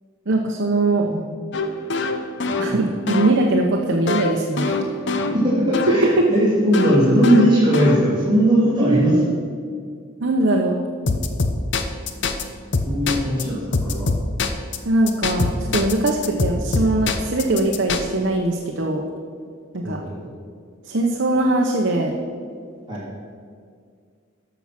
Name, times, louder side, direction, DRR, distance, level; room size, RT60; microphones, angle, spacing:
voice 1, 0.3-1.1 2.6-4.8 6.0-6.3 8.8-9.2 10.2-10.8 14.8-19.0 19.7-20.0 20.9-22.1, right 2 dB, 60° right, 1 dB, 0.9 m, -21 dB
sound 1, 1.5-6.1 6.7-8.4 11.1-12.4 12.7-13.4 13.7-14.8 15.1-18.0, left 3 dB, 60° left, 0.8 m, -24 dB
voice 2, 5.8-9.1 12.8-14.1 19.8-20.1 22.9-23.0, equal, 25° right, -10 dB, 2.8 m, -19 dB
13.5 x 6.1 x 5.9 m, 2.1 s
head